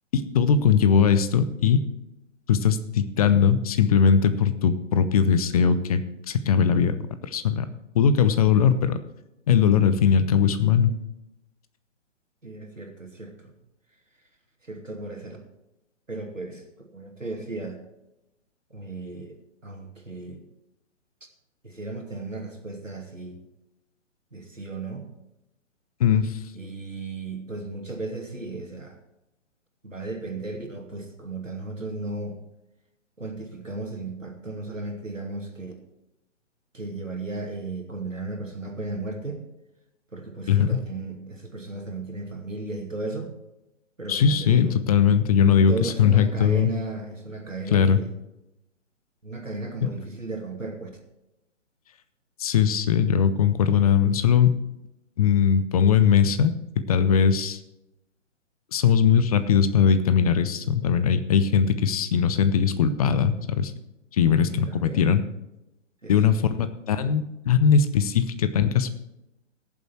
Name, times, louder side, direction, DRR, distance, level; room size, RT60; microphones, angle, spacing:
voice 1, 0.3-1.8 2.5-6.9 7.2-7.7 7.9-9.0 9.5-10.9 26.0-26.4 40.5-40.8 44.1-46.7 47.7-48.0 49.8-49.9 52.4-54.6 55.2-57.6 58.7-63.7 64.1-65.2 66.1-68.9, left 7 dB, 30° left, 11 dB, 0.8 m, -20 dB
voice 2, 12.4-13.5 14.7-15.4 16.1-17.8 18.7-19.3 19.6-20.4 21.6-23.4 24.3-25.1 26.5-29.0 29.8-32.4 33.2-35.7 36.7-39.4 40.1-43.3 44.0-44.8 45.7-48.1 49.2-50.9 64.5-65.0 66.0-66.1, right 3 dB, 90° right, 3 dB, 2.5 m, -35 dB
17.0 x 7.3 x 4.5 m, 0.92 s
figure-of-eight pair, 130°, 37 cm